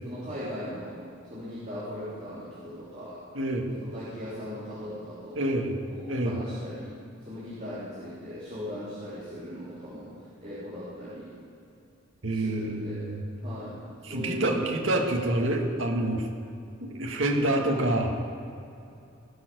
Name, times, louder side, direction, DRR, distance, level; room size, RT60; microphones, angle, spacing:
voice 1, 0.0-3.2 3.7-5.5 5.9-10.1 10.4-11.4 12.3-13.1 13.4-14.9, equal, 35° right, -10 dB, 3.4 m, -39 dB
voice 2, 3.3-3.7 5.4-5.8 6.1-6.4 12.2-13.2 14.0-16.3 16.8-18.2, right 1 dB, 70° right, 1 dB, 1.9 m, -27 dB
18.5 x 6.9 x 6.2 m, 2.6 s
head